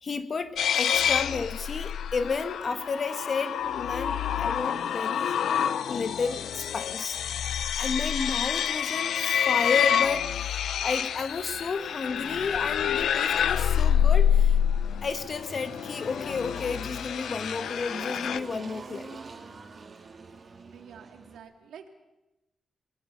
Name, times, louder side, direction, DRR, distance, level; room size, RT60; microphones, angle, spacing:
voice 1, 0.0-5.4 5.9-7.2 7.8-14.6 15.0-19.2, left 4 dB, 50° left, 9 dB, 1.7 m, -32 dB
sound 1, 0.6-18.4, left 9 dB, 80° left, 0.9 m, -27 dB
Engine, 13.9-21.4, right 4 dB, 45° right, 3.7 m, -46 dB
voice 2, 20.7-21.9, right 8 dB, 90° right, 4 dB, 2.5 m, -48 dB
28.5 x 20.5 x 6.9 m, 1.0 s
cardioid pair, 85°, 0 cm